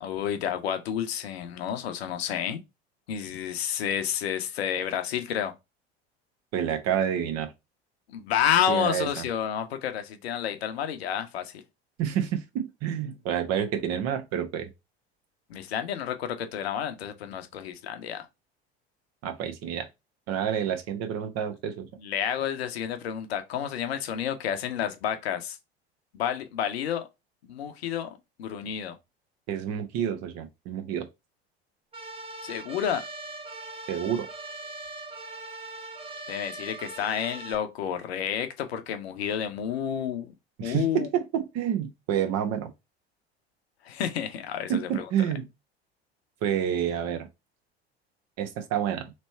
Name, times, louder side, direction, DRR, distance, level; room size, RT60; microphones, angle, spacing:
voice 1, 0.0-2.6 3.1-5.5 8.1-11.6 15.5-18.3 22.0-25.6 26.1-27.1 27.4-29.0 32.4-33.0 36.3-40.3 40.6-41.1 43.8-45.1, left 9 dB, 75° left, 0.8 m, -30 dB
voice 2, 6.5-7.5 8.7-9.3 12.0-14.7 19.2-19.9 20.3-21.9 29.5-31.1 33.9-34.3 40.6-42.7 44.7-45.5 46.4-47.3 48.4-49.1, right 9 dB, 50° right, 1.0 m, -28 dB
sound 1, 31.9-37.6, right 2 dB, 20° right, 0.9 m, -40 dB
3.3 x 3.0 x 4.3 m
figure-of-eight pair, 70°, 32 cm